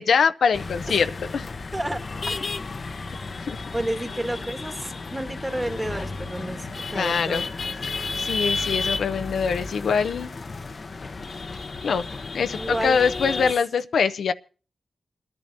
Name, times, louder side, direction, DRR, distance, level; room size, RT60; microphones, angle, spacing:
voice 1, 0.0-1.5 3.4-3.6 6.9-7.5 7.9-10.3 11.8-12.1 12.3-14.3, left 6 dB, 85° left, 0.6 m, -24 dB
sound 1, 0.5-13.5, left 3 dB, 55° left, 0.7 m, -32 dB
voice 2, 3.7-7.5 12.5-13.0 13.4-13.5, right 1 dB, 15° right, 1.6 m, -30 dB
28.0 x 10.5 x 2.6 m
cardioid pair, 60°, 0 cm